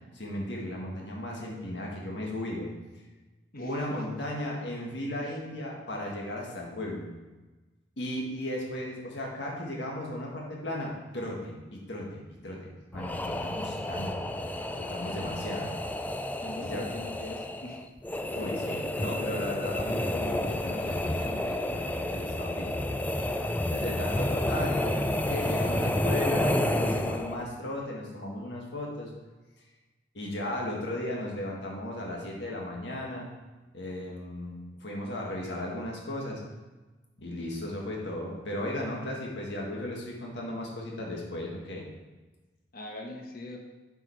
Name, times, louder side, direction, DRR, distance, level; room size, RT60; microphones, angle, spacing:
voice 1, 0.1-2.7 3.6-7.1 8.0-15.7 16.6-16.9 18.3-22.8 23.2-23.4 23.7-29.1 30.1-33.3 33.7-36.4 37.2-41.9, left 1 dB, 70° left, -1 dB, 1.7 m, -36 dB
voice 2, 3.5-4.0 5.3-5.4 16.4-17.8 42.7-43.6, left 1 dB, 50° left, 1 dB, 1.1 m, -41 dB
sound 1, 12.9-27.5, left 1 dB, 10° left, 0.3 m, -30 dB
7.7 x 5.0 x 4.6 m, 1.2 s
head